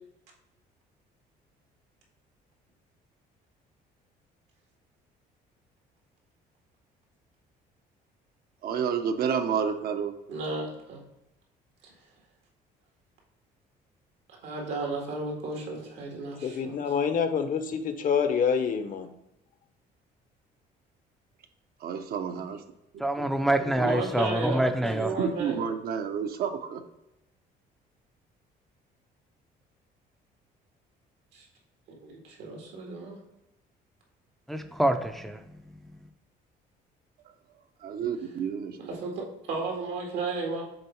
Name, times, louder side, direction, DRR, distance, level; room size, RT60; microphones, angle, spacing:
voice 1, 8.6-10.1 21.8-22.6 22.9-23.3 24.9-26.8 37.8-38.8, right 7 dB, 65° right, 0.8 m, -30 dB
voice 2, 10.3-11.0 11.8-11.9 14.3-16.8 23.6-24.6 25.0-25.7 31.3-31.5 31.9-33.2 38.9-40.6, right 3 dB, 85° right, 1.9 m, -34 dB
voice 3, 16.4-19.1, left 6 dB, 50° left, 0.8 m, -27 dB
voice 4, 23.0-25.3 34.5-35.5 35.9-36.0, right 1 dB, ahead, 0.4 m, -26 dB
6.8 x 3.9 x 4.4 m
cardioid pair, 110°, 17 cm